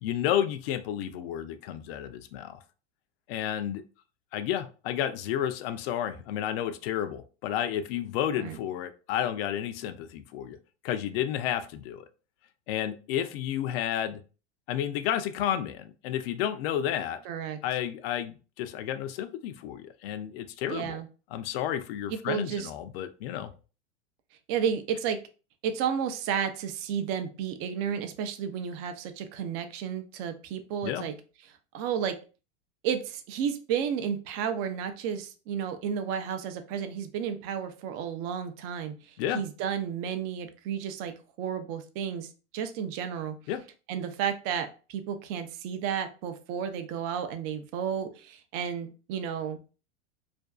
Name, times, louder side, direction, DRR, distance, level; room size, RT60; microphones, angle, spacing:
voice 1, 0.0-2.6 3.3-3.8 4.3-10.6 10.8-12.1 12.7-14.2 14.7-17.2 17.6-21.0 21.3-23.5 30.8-31.1 39.2-39.4 43.5-43.6, left 10 dB, 60° left, 10 dB, 0.4 m, -31 dB
voice 2, 17.2-17.6 20.7-21.1 22.1-22.7 24.5-25.2 25.6-31.2 31.4-32.2 32.8-43.4 43.9-49.6, right 8 dB, 40° right, 9 dB, 0.4 m, -32 dB
2.5 x 2.2 x 2.2 m, 0.35 s
hypercardioid pair, 115°, 34 cm